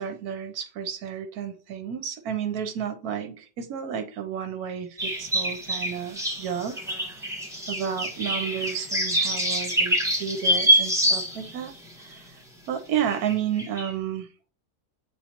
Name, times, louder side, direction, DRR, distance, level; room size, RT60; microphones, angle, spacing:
voice 1, 0.0-6.8 7.7-11.7 12.0-12.3 12.7-14.3, right 8 dB, 65° right, 1.2 m, -31 dB
sound 1, 5.0-11.6 12.1-12.2 13.1-13.3 13.6-13.9, right 1 dB, ahead, 1.3 m, -25 dB
8.1 x 4.1 x 2.9 m
omnidirectional pair, 1.8 m